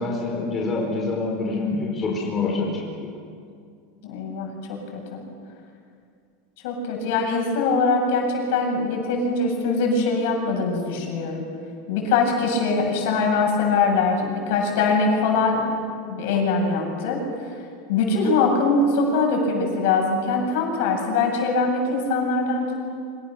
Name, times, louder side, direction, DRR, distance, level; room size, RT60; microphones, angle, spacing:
voice 1, 0.0-3.1, left 3 dB, 20° left, -2 dB, 4.4 m, -26 dB
voice 2, 4.0-5.2 6.6-11.4 11.9-15.6 16.0-17.2 17.9-22.8, left 3 dB, 60° left, 1 dB, 7.9 m, -22 dB
29.5 x 26.0 x 6.9 m, 2.3 s
supercardioid pair, 175°, 0 cm